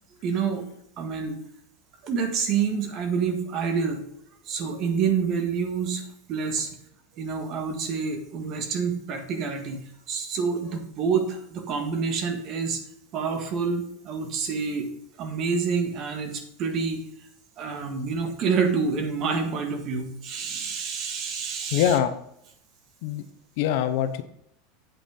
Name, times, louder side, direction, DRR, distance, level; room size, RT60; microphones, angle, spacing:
voice 1, 0.1-0.6 1.0-1.4 2.0-4.0 4.5-6.0 6.3-6.7 7.2-12.8 13.1-14.9 15.2-17.0 17.6-22.0, right 5 dB, 35° right, 5 dB, 1.8 m, -27 dB
voice 2, 21.7-22.1 23.0-23.2 23.6-24.2, left 10 dB, 60° left, 10 dB, 0.9 m, -23 dB
8.6 x 8.4 x 3.8 m, 0.74 s
supercardioid pair, 155°, 0 cm